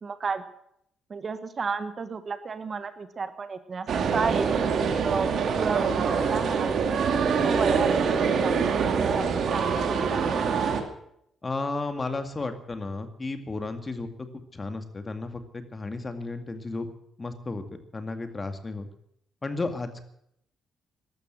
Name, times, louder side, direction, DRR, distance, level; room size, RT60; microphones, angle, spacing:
voice 1, 0.0-0.4 1.1-4.7 5.0-7.0 7.3-10.4, right 5 dB, 40° right, 11 dB, 1.4 m, -32 dB
sound 1, 3.9-10.8, right 6 dB, 60° right, 2.4 m, -25 dB
voice 2, 11.4-16.9 17.2-17.6 17.9-18.9 19.4-20.1, left 3 dB, 25° left, 8 dB, 2.1 m, -33 dB
14.5 x 12.5 x 7.7 m, 0.73 s
cardioid pair, 90°, 0 cm